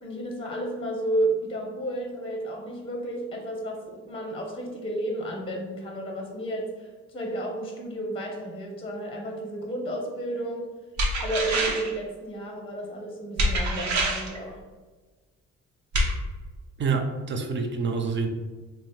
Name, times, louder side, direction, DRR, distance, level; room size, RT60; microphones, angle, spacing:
voice 1, 0.0-10.7 11.2-14.6, right 1 dB, 20° left, 0 dB, 0.7 m, -32 dB
sound 1, 11.0-12.0 13.4-14.4 15.9-16.1, right 1 dB, 70° right, 0.8 m, -25 dB
voice 2, 16.8-18.3, right 4 dB, 40° right, 4 dB, 0.6 m, -27 dB
3.4 x 2.0 x 4.2 m, 1.3 s
cardioid pair, 90°, 30 cm